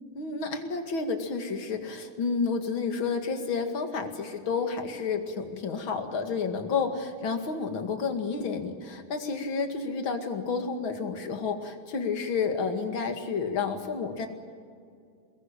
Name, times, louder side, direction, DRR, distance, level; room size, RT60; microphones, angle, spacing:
voice 1, 0.1-14.3, left 5 dB, 45° left, 5 dB, 2.7 m, -30 dB
24.0 x 20.5 x 8.9 m, 2.3 s
omnidirectional pair, 3.5 m